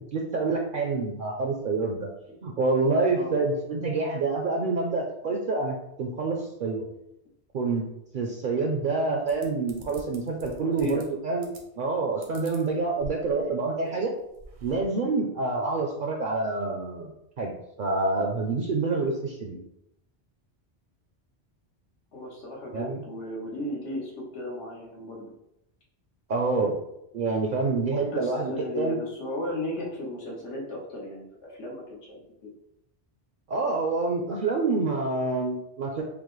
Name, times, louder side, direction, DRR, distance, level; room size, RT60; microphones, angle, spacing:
voice 1, 0.0-2.1 2.4-6.9 7.5-7.9 8.1-11.5 11.8-14.1 14.6-19.6 22.7-23.0 26.3-26.7 27.1-29.0 33.5-36.0, right 3 dB, 60° right, 0 dB, 0.6 m, -27 dB
sound 1, 9.3-11.0 11.4-11.9 12.2-13.5 13.9-14.0 14.2-14.8, right 3 dB, 75° right, 1.0 m, -46 dB
voice 2, 10.6-11.0 22.1-25.3 28.0-32.5, left 1 dB, 90° left, -2 dB, 1.3 m, -35 dB
5.1 x 2.1 x 3.0 m, 0.82 s
omnidirectional pair, 1.1 m